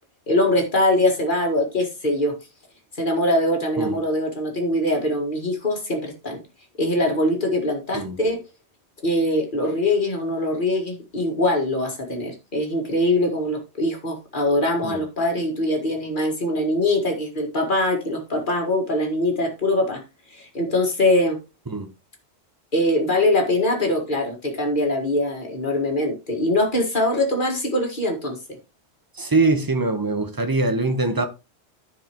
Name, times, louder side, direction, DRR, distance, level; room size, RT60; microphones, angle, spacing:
voice 1, 0.3-2.3 3.0-6.4 6.8-8.4 9.0-20.0 20.3-21.4 22.7-28.4, left 1 dB, 50° left, 2.0 m, -22 dB
voice 2, 29.2-31.3, right 3 dB, 20° right, 1.0 m, -22 dB
14.0 x 4.8 x 2.9 m
omnidirectional pair, 1.1 m